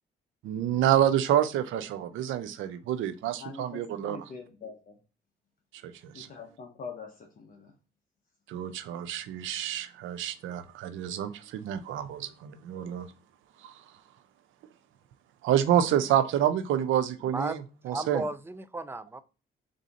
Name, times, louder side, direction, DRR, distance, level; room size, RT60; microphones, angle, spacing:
voice 1, 0.4-4.2 6.0-6.3 8.5-13.1 13.6-13.7 15.4-17.6 17.9-18.2, right 11 dB, 80° right, 0.5 m, -28 dB
voice 2, 3.4-5.0 6.1-7.7, left 5 dB, 45° left, 0.7 m, -44 dB
voice 3, 17.2-19.2, right 2 dB, 10° right, 0.3 m, -35 dB
3.4 x 2.7 x 3.9 m
cardioid pair, 90°, 20 cm